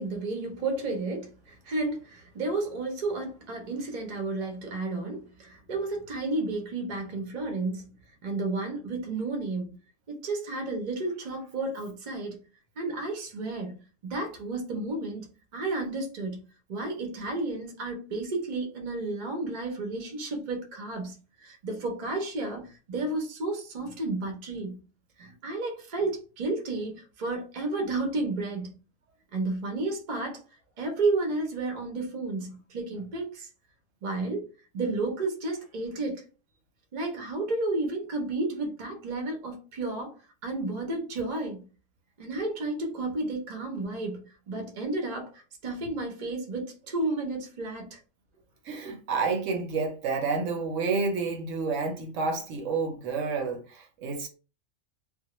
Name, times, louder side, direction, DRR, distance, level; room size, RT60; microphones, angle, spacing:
voice 1, 0.0-7.9 8.2-9.8 10.1-12.4 12.8-16.4 16.7-24.8 25.2-28.8 29.3-30.4 30.8-33.5 34.0-34.4 34.7-36.2 36.9-40.1 40.4-41.6 42.2-48.0 48.8-48.9, right 2 dB, 45° right, 0.6 m, -32 dB
voice 2, 48.6-54.3, right 4 dB, 75° right, 0.9 m, -29 dB
2.3 x 2.0 x 2.9 m
omnidirectional pair, 1.3 m